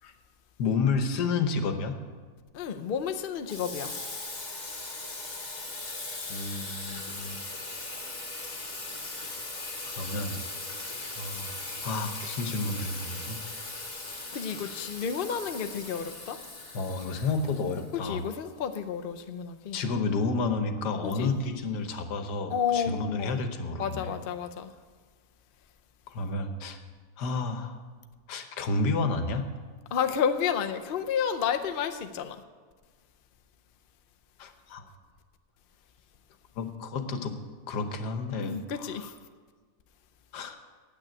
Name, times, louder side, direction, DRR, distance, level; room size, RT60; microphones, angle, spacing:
voice 1, 0.6-2.0 6.3-7.4 9.9-10.4 11.2-11.6 11.8-13.6 14.7-14.9 16.7-18.2 19.7-24.1 26.1-26.8 27.2-27.8 28.3-29.5 34.4-34.8 36.6-37.3 37.7-39.1 40.3-40.6, left 3 dB, 80° left, 1.6 m, -31 dB
voice 2, 2.5-3.9 14.3-16.4 18.0-19.8 21.0-21.3 22.5-23.4 23.8-24.7 29.9-32.4 38.4-39.1, left 7 dB, 55° left, 0.6 m, -31 dB
Water tap faucet / Sink (filling or washing), 3.5-18.3, left 2 dB, 25° left, 1.8 m, -39 dB
9.2 x 8.3 x 8.8 m
omnidirectional pair, 1.7 m